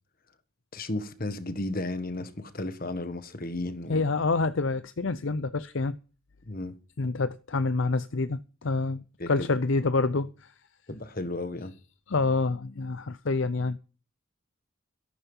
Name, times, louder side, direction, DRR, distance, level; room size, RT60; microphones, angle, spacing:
voice 1, 0.7-4.0 6.5-6.8 9.2-9.5 10.9-11.7, left 2 dB, 40° left, 1.5 m, -34 dB
voice 2, 3.9-6.0 7.0-10.5 12.1-13.8, left 3 dB, 60° left, 0.6 m, -27 dB
14.0 x 11.5 x 5.6 m
head